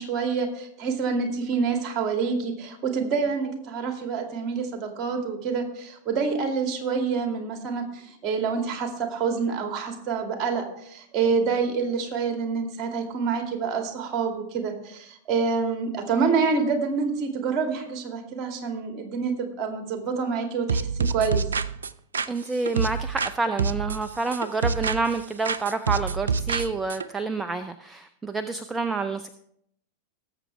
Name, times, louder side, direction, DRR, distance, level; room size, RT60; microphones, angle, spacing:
voice 1, 0.0-21.4, right 5 dB, 30° right, 4 dB, 2.4 m, -27 dB
sound 1, 20.7-23.3 23.6-25.2 25.4-27.1, right 5 dB, 70° right, 0.4 m, -27 dB
voice 2, 22.3-29.3, right 3 dB, 10° right, 10 dB, 0.6 m, -28 dB
19.0 x 7.7 x 3.4 m, 0.72 s
figure-of-eight pair, 90°, 0 cm